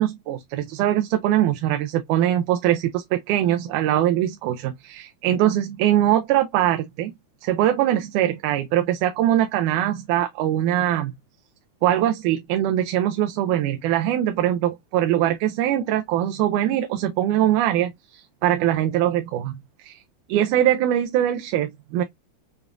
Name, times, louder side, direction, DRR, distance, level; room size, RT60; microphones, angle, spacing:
voice 1, 0.0-7.1 7.4-11.1 11.8-20.0 20.3-22.0, right 12 dB, 85° right, 2.1 m, -22 dB
6.8 x 2.3 x 2.4 m
omnidirectional pair, 3.6 m